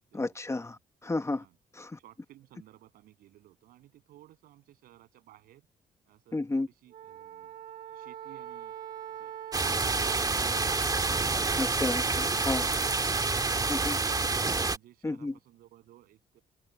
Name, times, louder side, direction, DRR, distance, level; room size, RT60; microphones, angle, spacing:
voice 1, 0.1-1.4 1.7-2.0 6.3-6.7 11.6-12.6 13.7-14.0 15.0-15.3, left 2 dB, 20° left, 1.4 m, -32 dB
voice 2, 2.0-5.7 6.1-7.6 7.9-8.7 9.1-11.0 14.7-16.4, right 14 dB, 85° right, 7.9 m, -57 dB
Wind instrument woodwind instrument, 6.9-11.3, right 10 dB, 70° right, 2.2 m, -43 dB
sound 1, 9.5-14.8, right 3 dB, 25° right, 2.0 m, -28 dB
cardioid pair, 80°, 15 cm